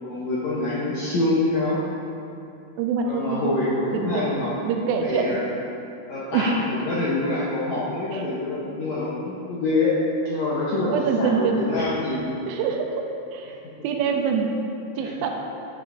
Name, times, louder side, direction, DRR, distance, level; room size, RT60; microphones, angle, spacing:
voice 1, 0.0-1.8 3.0-4.5 5.0-5.4 6.1-10.0 10.2-10.9 11.2-12.4 13.6-13.7 15.0-15.1, left 2 dB, 80° left, -8 dB, 1.5 m, -26 dB
voice 2, 2.8-3.6 3.9-4.3 4.6-5.4 6.3-6.7 8.1-8.2 10.9-11.6 12.5-12.9 13.3-13.6 13.8-14.5 15.0-15.3, right 6 dB, 85° right, 3 dB, 2.5 m, -25 dB
10.5 x 7.3 x 2.6 m, 2.8 s
omnidirectional pair, 4.6 m